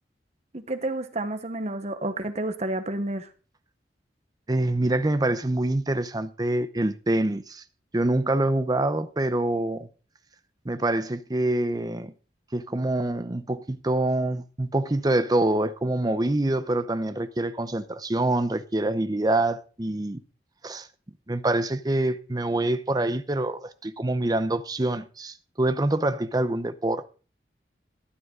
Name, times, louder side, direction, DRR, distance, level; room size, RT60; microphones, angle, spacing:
voice 1, 0.5-3.3, right 1 dB, 40° right, 1.1 m, -30 dB
voice 2, 4.5-7.6 7.9-9.9 10.6-12.1 12.5-20.2 20.6-20.9 21.3-27.1, right 1 dB, 20° right, 0.7 m, -25 dB
12.5 x 10.5 x 3.8 m
head